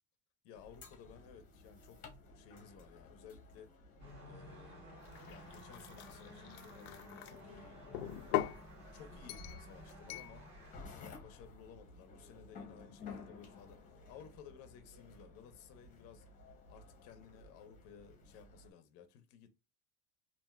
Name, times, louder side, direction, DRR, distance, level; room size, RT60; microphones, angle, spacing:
voice 1, 0.4-3.7 4.2-8.4 8.9-10.5 10.9-19.5, left 7 dB, 50° left, 0.7 m, -57 dB
sound 1, 0.5-18.7, left 3 dB, 25° left, 0.9 m, -55 dB
sound 2, 4.0-10.7, equal, 35° right, 1.9 m, -54 dB
sound 3, 5.1-7.3 7.9-8.6 9.3-9.6 10.1-10.3, left 14 dB, 85° left, 0.5 m, -40 dB
3.3 x 2.5 x 2.3 m
cardioid pair, 160°, 32 cm